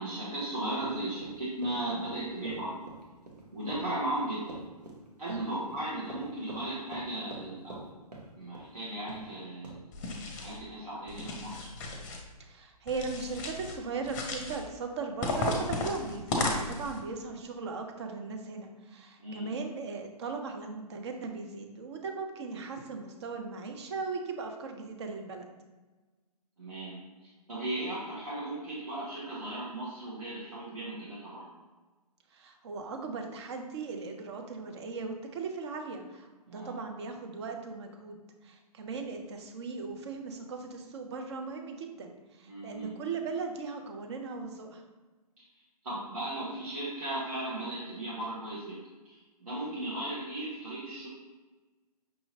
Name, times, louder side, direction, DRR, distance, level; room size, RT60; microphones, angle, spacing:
voice 1, 0.0-2.8 3.5-4.6 5.2-7.9 8.4-10.0 10.3-11.7 19.2-19.5 26.6-31.4 36.5-36.8 42.4-42.9 45.8-48.8 49.0-51.1, right 1 dB, 65° right, -8 dB, 1.4 m, -36 dB
Run, 0.8-7.9 8.1-8.7 9.1-9.3 9.6-9.8, right 2 dB, 90° right, 1.2 m, -46 dB
voice 2, 5.3-5.6 12.4-25.5 32.3-44.8, right 4 dB, 45° right, 4 dB, 0.6 m, -38 dB
sound 1, 9.9-10.6 11.1-12.2 12.9-13.8 14.0-14.6 15.2-17.0, left 2 dB, 25° left, 0.6 m, -34 dB
5.6 x 2.8 x 2.8 m, 1.2 s
figure-of-eight pair, 130°, 20 cm